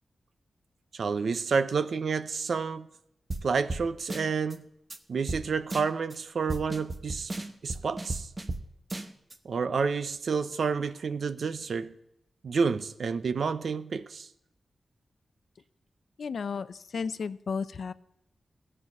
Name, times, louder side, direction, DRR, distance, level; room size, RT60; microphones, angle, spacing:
voice 1, 0.9-2.9 3.4-4.6 5.1-7.3 7.6-8.3 9.4-11.9 12.4-14.3, right 5 dB, 65° right, 0.6 m, -29 dB
sound 1, 3.3-3.4 3.7-3.8 4.1-4.6 4.9-5.0 5.3-5.4 5.7-6.2 6.5-8.6 8.9-9.4, right 2 dB, 30° right, 0.8 m, -34 dB
voice 2, 16.2-17.9, left 5 dB, 65° left, 0.5 m, -33 dB
15.0 x 5.6 x 9.3 m
wide cardioid pair, 125°, 0 cm